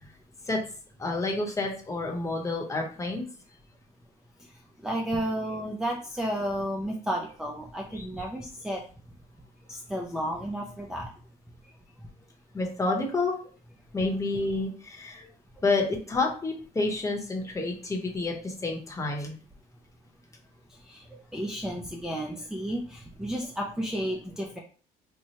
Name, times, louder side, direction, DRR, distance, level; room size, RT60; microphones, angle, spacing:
voice 1, 1.0-3.2 7.9-8.0 12.5-13.4 13.9-15.2 15.6-19.3, left 3 dB, 20° left, 0 dB, 1.0 m, -29 dB
voice 2, 4.8-8.8 9.7-11.1 20.9-21.0 21.3-24.6, equal, 5° right, -1 dB, 0.5 m, -32 dB
4.3 x 2.2 x 2.9 m, 0.40 s
cardioid pair, 110°, 17 cm